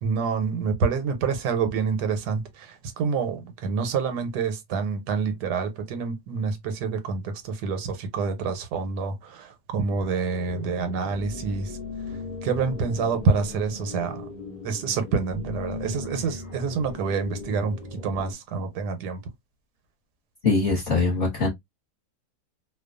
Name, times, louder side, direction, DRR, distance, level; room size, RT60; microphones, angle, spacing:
voice 1, 0.0-11.8 12.4-14.3 14.6-19.2, right 5 dB, 85° right, 1.2 m, -27 dB
sound 1, 9.9-18.3, left 3 dB, 80° left, 0.4 m, -38 dB
voice 2, 20.4-21.5, left 3 dB, 40° left, 1.0 m, -22 dB
2.6 x 2.3 x 2.3 m
omnidirectional pair, 1.7 m